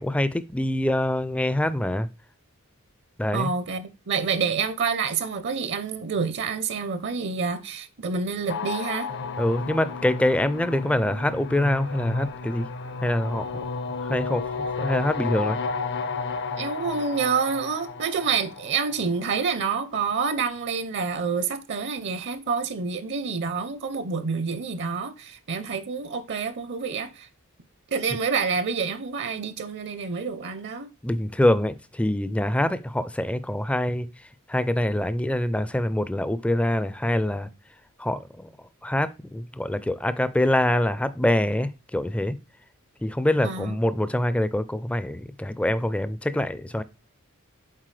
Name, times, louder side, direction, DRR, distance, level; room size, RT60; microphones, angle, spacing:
voice 1, 0.0-2.1 3.2-3.5 9.4-12.7 13.0-13.5 14.1-15.6 31.0-34.1 34.5-37.5 38.0-38.5 38.8-42.4 43.0-46.8, left 1 dB, 5° left, 0.4 m, -25 dB
voice 2, 3.3-9.1 16.6-27.3 27.9-30.9 43.4-43.8, right 5 dB, 55° right, 0.6 m, -28 dB
sound 1, 8.5-19.6, left 4 dB, 55° left, 0.6 m, -32 dB
7.5 x 4.4 x 3.2 m
head